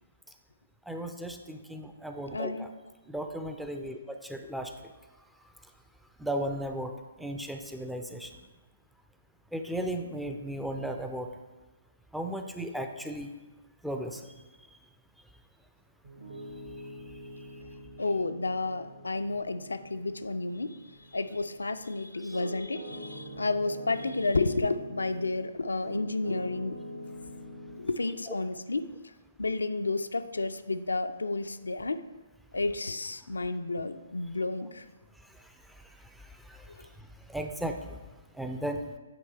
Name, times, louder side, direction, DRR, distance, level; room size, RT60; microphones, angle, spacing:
voice 1, 0.9-2.7 3.1-4.7 6.2-6.9 7.2-8.3 9.5-11.3 12.1-13.3 13.8-14.2 28.3-28.4 37.3-38.0 38.4-38.8, right 1 dB, ahead, 5 dB, 0.4 m, -35 dB
voice 2, 2.3-2.7 18.0-20.8 21.1-26.8 27.8-28.9 29.4-32.0 32.5-34.9, left 3 dB, 75° left, 9 dB, 0.3 m, -31 dB
Piano, 16.0-25.4 25.8-27.8, equal, 55° right, 2.3 m, -45 dB
8.8 x 3.2 x 4.3 m, 1.1 s
figure-of-eight pair, 130°, 0 cm